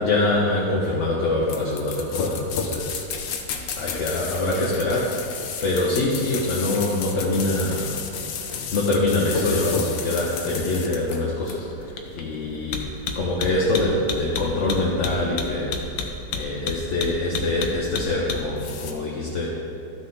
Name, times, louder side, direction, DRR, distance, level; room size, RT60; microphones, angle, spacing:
voice 1, 0.0-3.0 3.8-5.2 5.6-8.0 8.7-16.1 16.3-19.5, left 2 dB, 50° left, -5 dB, 1.2 m, -24 dB
sound 1, 1.5-18.9, left 6 dB, 85° left, 1.5 m, -31 dB
13.0 x 6.3 x 3.9 m, 2.5 s
omnidirectional pair, 1.9 m